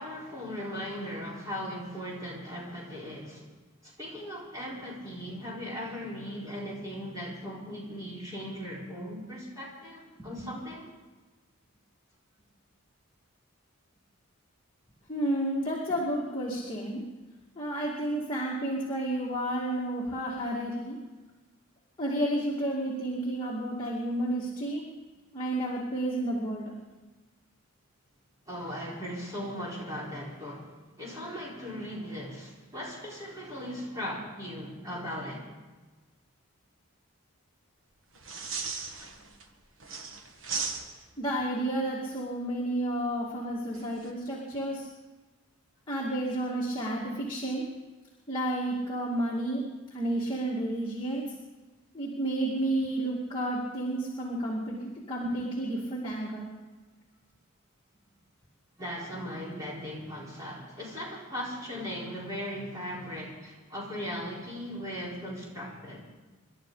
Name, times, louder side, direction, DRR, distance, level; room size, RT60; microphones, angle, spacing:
voice 1, 0.0-3.5 3.8-10.9 28.5-35.5 58.8-66.1, equal, 15° right, -5 dB, 4.2 m, -38 dB
voice 2, 15.1-17.0 17.6-21.0 22.0-24.8 25.3-26.7 41.2-44.9 45.9-47.6 48.3-49.6 49.9-51.3 51.9-56.5, right 1 dB, 20° left, -5 dB, 2.2 m, -31 dB
sound 1, 38.2-39.4 39.8-41.2 43.7-44.1, right 4 dB, 60° right, 1.4 m, -36 dB
27.0 x 12.0 x 3.9 m, 1.2 s
head